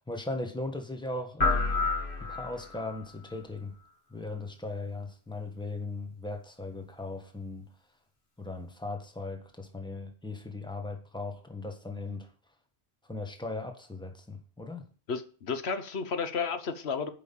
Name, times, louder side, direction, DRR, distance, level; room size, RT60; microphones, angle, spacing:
voice 1, 0.0-1.9 2.2-3.7 4.1-7.7 8.4-12.3 13.1-14.9, left 2 dB, 5° left, 1.4 m, -38 dB
sound 1, 1.4-3.0, left 3 dB, 55° left, 1.9 m, -29 dB
voice 2, 15.1-17.1, left 5 dB, 85° left, 1.3 m, -32 dB
8.3 x 5.6 x 7.1 m
omnidirectional pair, 1.1 m